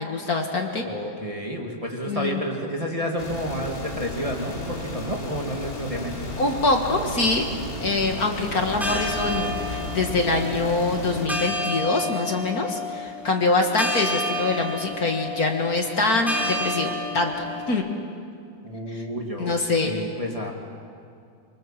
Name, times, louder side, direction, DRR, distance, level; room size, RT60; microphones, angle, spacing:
voice 1, 0.0-0.8 2.1-2.4 6.4-7.5 7.8-17.3 17.7-17.8 18.9-19.0 19.4-19.9, left 3 dB, 50° left, 3 dB, 2.1 m, -24 dB
voice 2, 0.8-6.3 18.6-19.6 19.8-20.5, equal, 15° right, 0 dB, 2.2 m, -30 dB
sound 1, 3.2-11.3, left 1 dB, 30° left, 2.4 m, -33 dB
sound 2, 8.6-17.7, left 1 dB, ahead, 4.8 m, -31 dB
25.0 x 24.5 x 7.5 m, 2.4 s
omnidirectional pair, 2.1 m